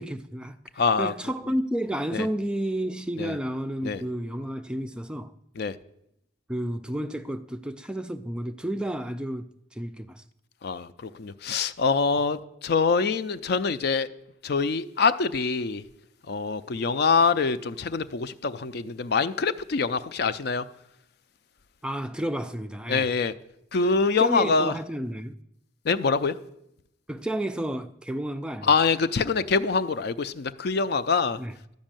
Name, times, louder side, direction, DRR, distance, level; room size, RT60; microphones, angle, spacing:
voice 1, 0.0-0.6 1.0-5.3 6.5-10.2 21.8-23.1 24.2-25.4 27.1-28.7 31.4-31.6, right 1 dB, 5° right, 0.4 m, -31 dB
voice 2, 0.8-1.1 2.1-2.3 3.2-3.4 3.8-4.0 5.6-5.8 10.6-14.1 14.4-15.8 16.3-20.7 22.9-23.3 23.7-24.7 25.8-26.4 28.6-31.4, left 4 dB, 60° left, 0.5 m, -25 dB
12.0 x 5.3 x 8.9 m
head